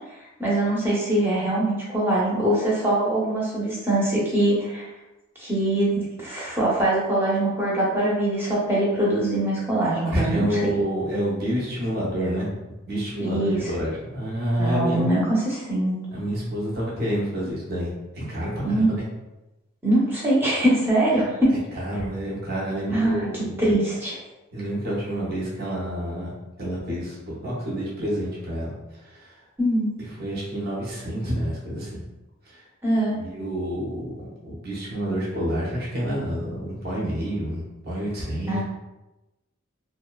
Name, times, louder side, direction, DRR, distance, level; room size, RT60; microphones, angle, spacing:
voice 1, 0.4-4.9 5.4-10.7 13.2-13.7 14.6-16.0 18.6-18.9 19.8-21.5 22.9-24.2 29.6-29.9 32.8-33.2 38.5-38.6, right 1 dB, 10° right, -7 dB, 0.6 m, -23 dB
voice 2, 10.1-12.5 12.9-15.1 16.1-17.9 18.2-19.0 21.7-23.7 24.5-26.3 26.6-28.7 29.1-29.3 30.2-31.9 32.5-32.6 33.2-38.6, equal, 50° right, -6 dB, 0.7 m, -28 dB
2.6 x 2.1 x 2.3 m, 1.0 s
head